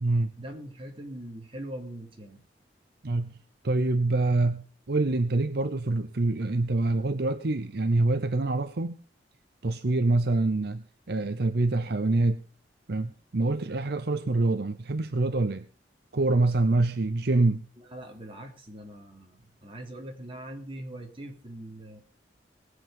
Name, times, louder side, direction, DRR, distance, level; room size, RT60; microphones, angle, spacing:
voice 1, 0.4-2.4 17.8-22.0, right 1 dB, 30° right, 2 dB, 3.1 m, -42 dB
voice 2, 3.0-3.3 3.6-9.0 9.6-12.4 12.9-15.6 16.1-17.6, right 2 dB, 65° right, 11 dB, 0.7 m, -25 dB
19.5 x 7.8 x 5.4 m, 0.38 s
head